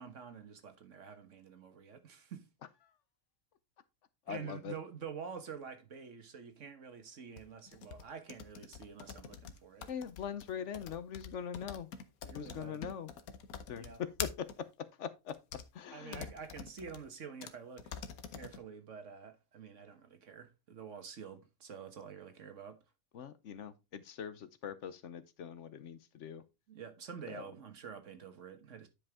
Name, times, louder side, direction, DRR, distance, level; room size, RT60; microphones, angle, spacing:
voice 1, 0.0-2.5 4.3-9.9 12.2-12.9 13.8-14.0 15.9-18.0 18.3-22.8 26.7-28.9, right 6 dB, 60° right, 1.5 m, -48 dB
voice 2, 4.3-4.7 9.9-11.9 12.3-13.1 13.7-15.4 15.7-16.3 23.1-26.4 27.3-27.5, left 8 dB, 60° left, 1.0 m, -42 dB
sound 1, 7.4-14.6 15.3-15.6 16.1-17.0 17.4-17.5 17.8-18.6, left 7 dB, 85° left, 1.3 m, -45 dB
9.7 x 5.2 x 3.5 m
omnidirectional pair, 1.5 m